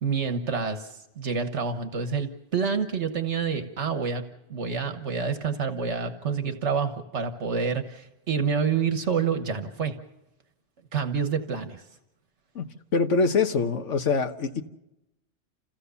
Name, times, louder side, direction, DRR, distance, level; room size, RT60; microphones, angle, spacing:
voice 1, 0.0-4.2 4.5-10.0 10.9-11.9, right 6 dB, 75° right, 7 dB, 1.5 m, -28 dB
voice 2, 12.5-14.6, left 4 dB, 85° left, 7 dB, 1.5 m, -24 dB
28.5 x 16.5 x 6.9 m, 0.90 s
omnidirectional pair, 1.2 m